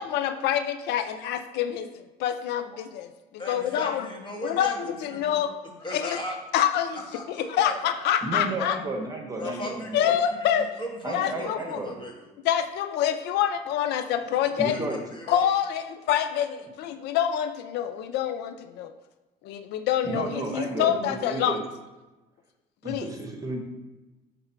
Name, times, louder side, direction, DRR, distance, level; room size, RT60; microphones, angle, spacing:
voice 1, 0.0-3.1 3.5-4.1 4.4-4.8 5.0-5.5 5.9-6.2 6.5-7.0 7.5-8.8 9.9-10.7 11.1-11.8 12.4-14.8 15.3-18.9 19.4-21.6 22.8-23.1, left 10 dB, 80° left, 9 dB, 0.4 m, -26 dB
voice 2, 3.4-5.4 5.8-6.4 6.9-7.7 9.4-11.5 11.8-12.3 14.7-14.8 15.1-15.5, left 1 dB, 30° left, -1 dB, 1.6 m, -37 dB
voice 3, 8.2-10.2 11.0-11.9 14.6-15.0 20.0-21.6 22.8-23.6, right 2 dB, 20° right, 2 dB, 1.1 m, -32 dB
5.6 x 3.4 x 5.8 m, 1.1 s
cardioid pair, 110°, 17 cm